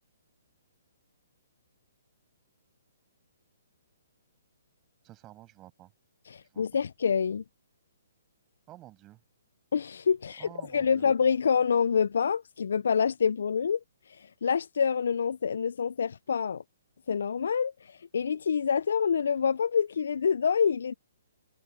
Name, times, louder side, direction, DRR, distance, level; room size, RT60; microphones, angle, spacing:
voice 1, 5.0-5.9 6.4-6.6 8.7-9.2 10.3-11.1, right 16 dB, 25° right, 7.4 m, -51 dB
voice 2, 6.3-7.4 9.7-13.8 14.2-16.6 17.1-20.9, left 6 dB, 65° left, 0.7 m, -27 dB
figure-of-eight pair, 130°, 0 cm